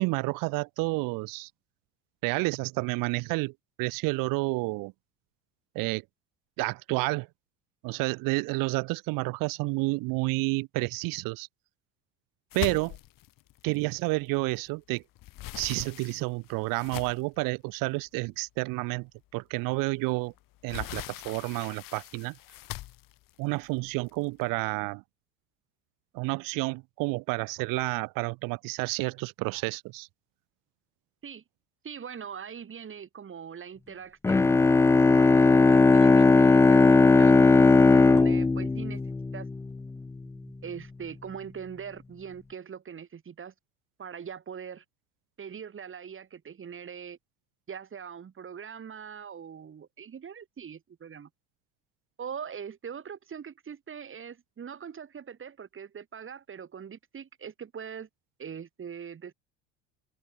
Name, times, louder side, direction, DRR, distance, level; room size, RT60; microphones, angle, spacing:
voice 1, 0.0-1.5 2.2-3.5 3.8-4.9 5.7-6.0 6.6-7.3 7.8-11.5 12.5-13.0 13.6-15.0 15.5-20.3 20.6-22.4 23.4-25.0 26.1-30.1, right 25 dB, 65° right, 0.7 m, -30 dB
sound 1, 12.5-14.7 15.0-17.4 18.1-18.2 18.6-18.7 20.1-24.4, left 17 dB, 60° left, 4.5 m, -41 dB
voice 2, 31.8-34.5 35.0-37.4 37.9-39.5 40.6-43.5 44.0-44.8 45.4-47.2 47.7-51.3 52.2-58.1 58.4-59.3, right 7 dB, 35° right, 5.5 m, -42 dB
Bowed string instrument, 34.2-39.8, left 3 dB, 10° left, 0.3 m, -18 dB
open air
supercardioid pair, 95°, 37 cm